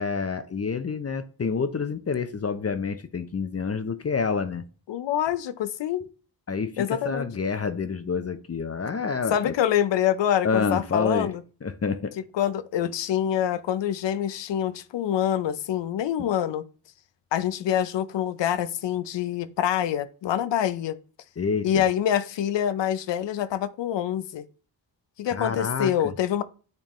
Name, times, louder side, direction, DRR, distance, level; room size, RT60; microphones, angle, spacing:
voice 1, 0.0-4.6 6.5-9.5 10.4-11.3 11.6-12.1 21.4-21.8 25.3-26.1, left 5 dB, 35° left, 0.7 m, -28 dB
voice 2, 4.9-6.1 6.8-7.3 9.3-11.4 12.3-16.6 17.3-21.0 21.6-24.5 25.2-26.4, left 10 dB, 85° left, 0.6 m, -26 dB
9.0 x 3.5 x 3.1 m
cardioid pair, 70°, 42 cm